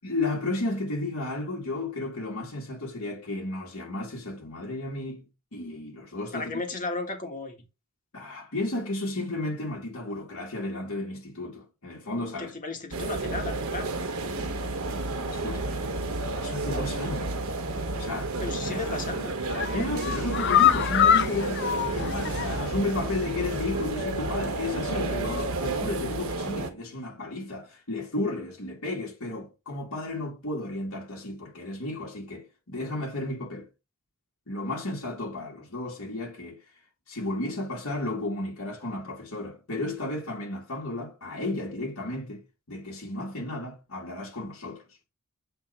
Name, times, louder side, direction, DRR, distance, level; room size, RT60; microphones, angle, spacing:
voice 1, 0.0-6.5 8.1-12.5 14.3-14.6 15.3-15.9 16.3-17.4 17.9-18.3 19.7-33.7 34.5-36.6 37.1-42.4 42.7-44.8, left 2 dB, 85° left, 2.2 m, -33 dB
voice 2, 6.3-7.6 12.4-14.0 18.4-19.4, left 3 dB, 40° left, 1.5 m, -34 dB
sound 1, 12.9-26.7, right 2 dB, 80° right, 1.1 m, -31 dB
sound 2, 18.6-19.0 19.4-22.8 23.1-23.2 23.6-23.7, left 10 dB, 55° left, 0.4 m, -25 dB
8.0 x 3.0 x 4.3 m
head